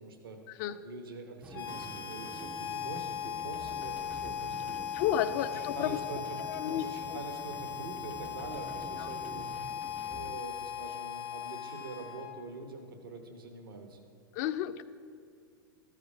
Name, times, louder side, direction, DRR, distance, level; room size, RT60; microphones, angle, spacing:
voice 1, 0.0-9.8 10.1-14.1, right 3 dB, 85° right, 4 dB, 1.0 m, -45 dB
sound 1, 1.4-10.4, right 4 dB, 10° right, 0.3 m, -48 dB
Harmonica, 1.5-12.6, left 9 dB, 80° left, 0.9 m, -39 dB
voice 2, 4.9-6.0 6.5-6.8 14.3-14.8, left 11 dB, 55° left, 12 dB, 0.4 m, -31 dB
13.5 x 5.0 x 4.7 m, 2.4 s
hypercardioid pair, 100°, 12 cm